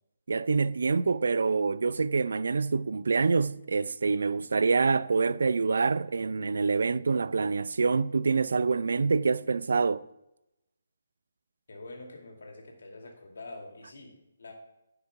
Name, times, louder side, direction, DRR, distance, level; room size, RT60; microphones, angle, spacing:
voice 1, 0.3-10.0, right 4 dB, 70° right, 0.4 m, -26 dB
voice 2, 11.7-14.5, left 2 dB, 70° left, 2.4 m, -46 dB
10.5 x 5.6 x 4.7 m
hypercardioid pair, 155°, 0 cm